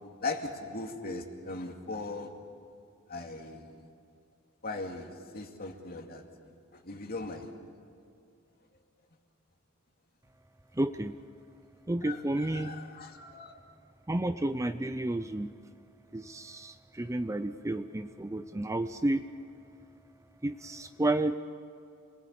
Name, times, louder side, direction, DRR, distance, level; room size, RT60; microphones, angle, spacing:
voice 1, 0.2-2.3 3.1-3.9 4.6-6.2 6.7-7.5 12.1-13.6, left 3 dB, 45° left, 3 dB, 2.5 m, -39 dB
voice 2, 10.7-11.1 11.9-12.7 14.1-15.5 16.1-19.2 20.4-21.4, right 1 dB, 15° right, 10 dB, 0.5 m, -31 dB
28.0 x 21.0 x 8.5 m, 2.4 s
head